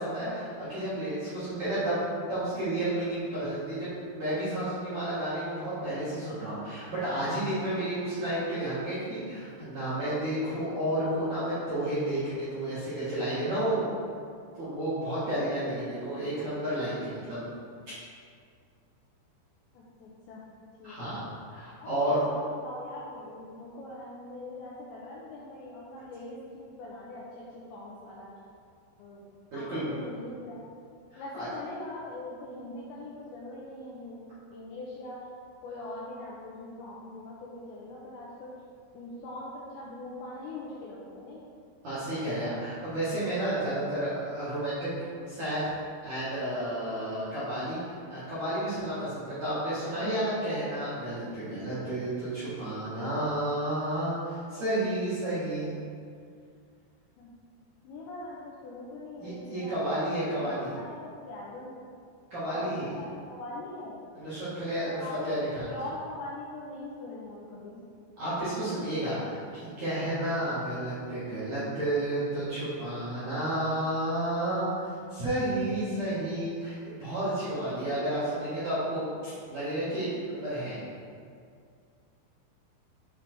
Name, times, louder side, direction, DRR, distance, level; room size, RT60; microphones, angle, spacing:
voice 1, 0.0-13.9 14.6-17.4 20.8-22.2 29.5-30.0 31.1-31.5 41.8-44.9 45.3-45.7 46.0-55.8 59.2-60.7 62.3-62.9 64.1-65.7 68.2-74.7 75.1-80.8, right 1 dB, 55° right, -14 dB, 2.2 m, -31 dB
voice 2, 19.7-20.4 20.8-21.2 21.8-28.3 29.0-29.2 29.5-30.6 31.1-34.2 34.5-35.2 35.6-38.6 38.9-41.4 57.2-57.3 57.8-59.9 60.3-61.9 62.5-64.0 64.9-65.4 65.7-67.9, left 2 dB, 80° left, -5 dB, 2.6 m, -42 dB
8.7 x 3.8 x 4.5 m, 2.2 s
omnidirectional pair, 5.8 m